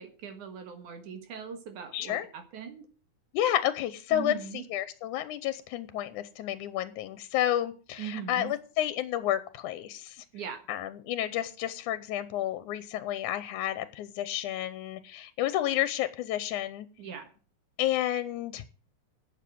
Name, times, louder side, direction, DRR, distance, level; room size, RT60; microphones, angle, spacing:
voice 1, 0.0-2.9 4.1-4.7 8.0-8.5 10.3-10.6 17.0-17.3, right 7 dB, 75° right, 7 dB, 3.0 m, -40 dB
voice 2, 1.9-2.3 3.3-4.3 4.7-10.2 10.7-16.9 17.8-18.6, left 12 dB, 80° left, 13 dB, 2.2 m, -31 dB
12.0 x 8.2 x 7.7 m, 0.38 s
omnidirectional pair, 3.5 m